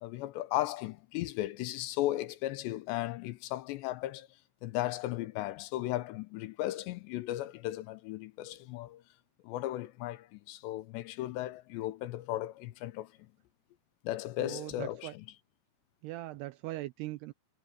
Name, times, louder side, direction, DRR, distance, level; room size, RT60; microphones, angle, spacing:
voice 1, 0.0-4.3 4.6-9.0 9.4-13.1 14.0-15.3, left 15 dB, 80° left, 2.9 m, -36 dB
voice 2, 14.4-15.1 16.0-17.3, right 17 dB, 85° right, 2.4 m, -40 dB
omnidirectional pair, 5.2 m